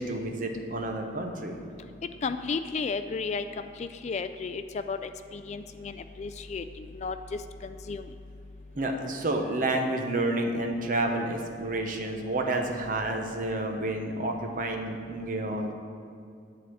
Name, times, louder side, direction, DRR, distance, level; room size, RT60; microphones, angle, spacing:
voice 1, 0.0-1.6 8.7-15.7, right 2 dB, 45° right, 3 dB, 0.9 m, -30 dB
voice 2, 2.2-8.1, left 4 dB, 40° left, 10 dB, 0.3 m, -34 dB
10.0 x 4.1 x 7.6 m, 2.4 s
head